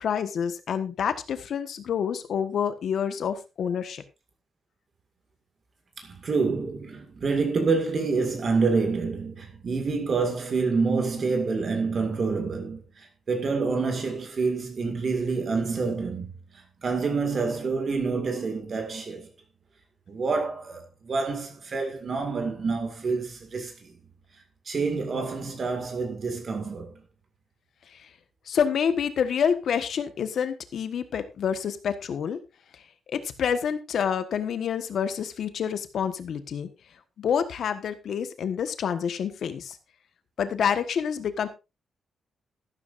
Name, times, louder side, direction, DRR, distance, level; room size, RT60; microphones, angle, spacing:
voice 1, 0.0-4.0 27.9-28.1 28.5-32.4 32.7-32.8 33.1-36.7 37.2-39.8 40.4-41.5, left 7 dB, 60° left, 1.3 m, -28 dB
voice 2, 6.0-19.3 20.1-23.9 24.7-27.0, right 4 dB, 40° right, 2.1 m, -27 dB
13.5 x 12.5 x 2.6 m
wide cardioid pair, 170°, 0 cm